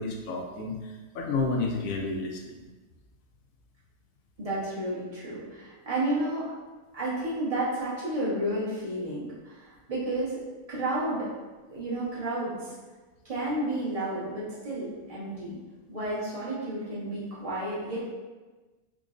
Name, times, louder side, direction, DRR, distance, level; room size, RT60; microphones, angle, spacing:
voice 1, 0.0-2.6, left 3 dB, 70° left, -1 dB, 0.9 m, -31 dB
voice 2, 4.4-6.5 6.9-10.4 10.7-11.3 11.7-12.7 13.2-15.6 15.9-18.1, right 1 dB, 30° right, -8 dB, 0.8 m, -31 dB
4.9 x 2.2 x 2.4 m, 1.3 s
omnidirectional pair, 1.7 m